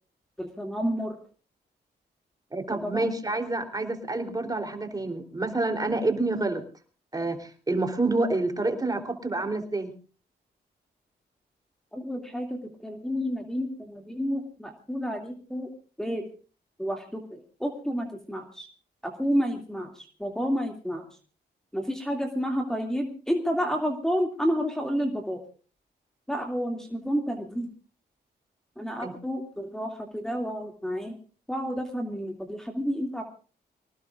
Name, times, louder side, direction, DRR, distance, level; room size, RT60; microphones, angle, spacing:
voice 1, 0.4-1.2 2.8-3.1 11.9-15.7 16.0-16.3 16.8-18.7 19.0-21.1 21.7-25.4 26.3-27.7 28.8-31.2 31.5-33.2, equal, 5° left, 3 dB, 2.5 m, -30 dB
voice 2, 2.5-6.6 7.1-9.9 29.0-29.1, right 2 dB, 20° right, 5 dB, 3.5 m, -28 dB
25.0 x 18.5 x 2.5 m, 0.37 s
cardioid pair, 85°, 18 cm